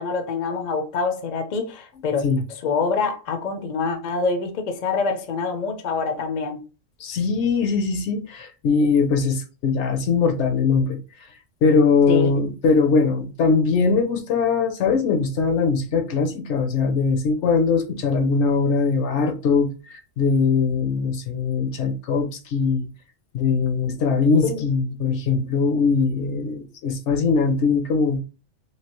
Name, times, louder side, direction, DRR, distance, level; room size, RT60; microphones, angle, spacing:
voice 1, 0.0-6.6 12.1-12.3 23.8-24.1 24.4-24.6, left 4 dB, 50° left, 0.5 m, -26 dB
voice 2, 7.0-11.0 11.6-22.9 23.3-28.2, left 4 dB, 70° left, 0.9 m, -21 dB
3.2 x 2.8 x 2.9 m
omnidirectional pair, 1.3 m